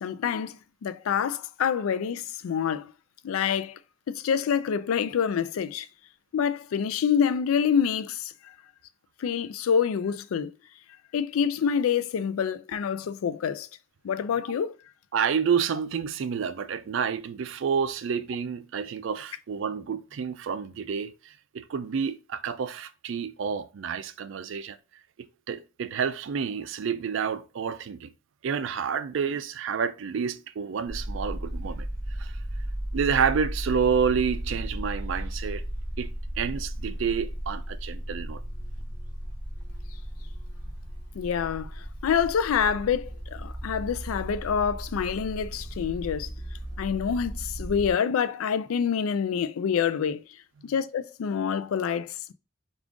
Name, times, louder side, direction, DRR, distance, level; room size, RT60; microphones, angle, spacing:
voice 1, 0.0-2.8 3.2-3.8 4.1-5.9 6.3-8.5 9.2-10.5 11.1-13.7 14.0-14.7 41.1-46.3 46.8-50.2 50.6-52.3, left 7 dB, 90° left, 0.3 m, -27 dB
voice 2, 15.1-24.8 25.5-28.1 28.4-31.9 32.2-32.3 32.9-35.6 36.0-38.4 50.6-50.7, right 6 dB, 65° right, 0.3 m, -29 dB
sound 1, 30.9-47.9, right 1 dB, 55° left, 1.2 m, -35 dB
3.6 x 2.4 x 3.5 m
head